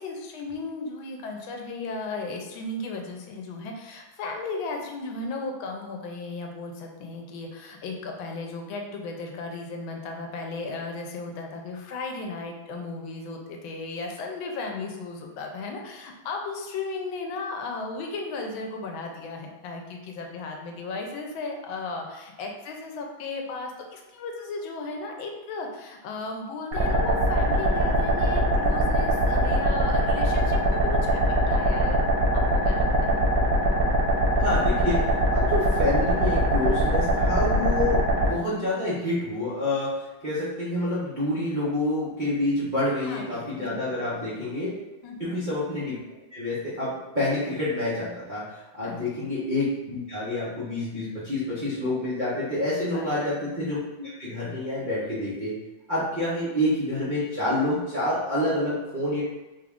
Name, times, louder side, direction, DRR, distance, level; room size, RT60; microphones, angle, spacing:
voice 1, 0.0-31.2 31.5-32.1 32.5-33.2 43.1-44.0 45.0-45.4 48.8-49.2 52.9-53.2, left 3 dB, 80° left, 2 dB, 1.3 m, -35 dB
sound 1, 26.7-38.3, right 1 dB, 60° right, 1.0 m, -22 dB
voice 2, 34.4-44.7 45.2-55.6 55.9-59.2, left 1 dB, 85° right, -10 dB, 0.4 m, -28 dB
3.6 x 2.3 x 3.5 m, 1.1 s
omnidirectional pair, 2.3 m